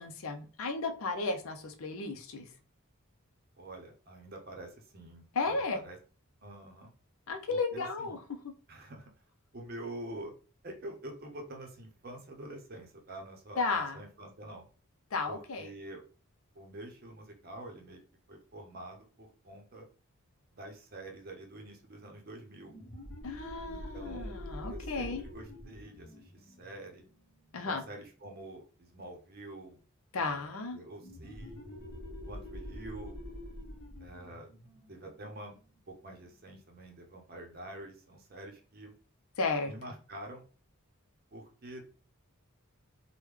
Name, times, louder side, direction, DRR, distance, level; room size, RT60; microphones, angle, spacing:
voice 1, 0.0-2.5 5.4-5.8 7.3-8.2 8.4-8.5 13.6-14.0 15.1-15.7 23.2-25.2 27.5-27.8 30.1-30.8 39.4-39.7, left 3 dB, 70° left, 5 dB, 0.5 m, -34 dB
voice 2, 3.6-6.0 6.4-6.9 7.5-8.2 8.7-9.1 9.5-10.3 10.6-14.7 15.3-16.0 16.5-18.0 18.3-19.9 20.5-22.7 23.7-24.3 24.7-27.0 27.6-29.8 30.1-31.6 32.3-33.2 34.0-34.5 34.9-35.5 35.9-38.9 39.7-40.4 41.3-41.8, right 1 dB, 45° right, 2 dB, 0.7 m, -47 dB
sound 1, 22.6-27.9 31.0-36.3, left 1 dB, 45° left, 0.8 m, -46 dB
3.5 x 2.2 x 3.1 m, 0.38 s
head